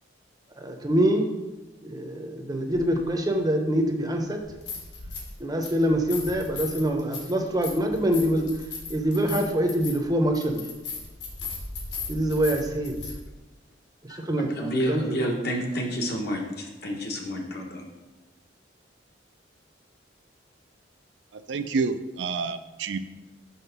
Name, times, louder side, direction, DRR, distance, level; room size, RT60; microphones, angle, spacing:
voice 1, 0.6-1.2 1.8-4.4 5.4-8.5 8.9-10.6 12.1-12.9 14.2-15.2, right 1 dB, 20° right, 3 dB, 0.6 m, -25 dB
sound 1, 2.7-2.8 4.4-5.3 5.6-13.1, left 4 dB, 75° left, 1.6 m, -37 dB
voice 2, 14.1-17.9, equal, 55° left, 1 dB, 1.0 m, -30 dB
voice 3, 21.3-23.0, right 4 dB, 75° right, 10 dB, 0.4 m, -29 dB
5.6 x 3.6 x 5.8 m, 1.1 s
head